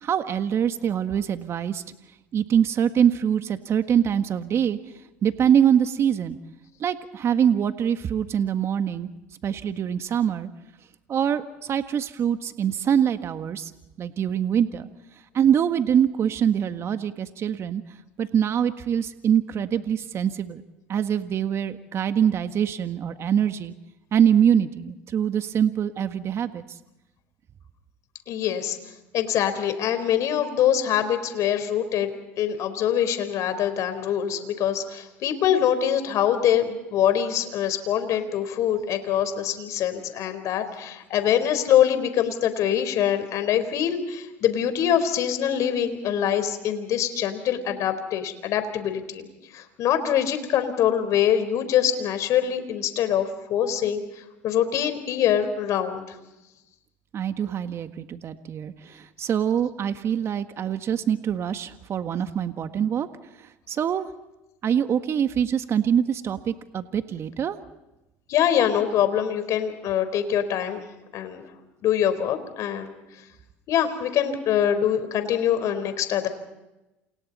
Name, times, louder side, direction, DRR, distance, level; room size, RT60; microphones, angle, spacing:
voice 1, 0.0-1.8 2.3-4.8 5.2-6.4 6.8-9.1 9.4-10.5 11.1-13.7 14.0-14.9 15.3-17.8 18.2-20.6 20.9-23.7 24.1-26.6 57.1-63.1 63.4-64.1 64.6-67.6, right 8 dB, 45° right, 9 dB, 1.6 m, -24 dB
voice 2, 28.3-28.8 29.1-32.1 32.4-49.2 49.5-56.2 68.3-70.8 71.1-71.4 71.8-72.9 73.7-76.3, left 9 dB, 55° left, 10 dB, 4.4 m, -24 dB
29.0 x 28.5 x 4.2 m, 0.96 s
hypercardioid pair, 80°, 6 cm